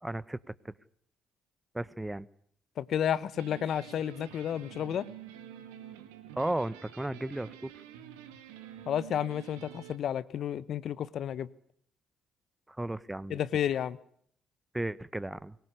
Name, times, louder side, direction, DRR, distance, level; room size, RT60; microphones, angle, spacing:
voice 1, 0.0-0.4 0.6-0.7 1.7-2.3 6.4-7.7 12.7-13.4 14.7-15.5, right 1 dB, 10° right, 18 dB, 1.4 m, -34 dB
voice 2, 2.8-5.1 8.9-11.5 13.3-14.0, left 9 dB, 60° left, 18 dB, 1.2 m, -31 dB
sound 1, 3.3-10.0, right 10 dB, 80° right, 2.3 m, -48 dB
24.5 x 22.5 x 8.3 m, 0.63 s
hypercardioid pair, 45°, 0 cm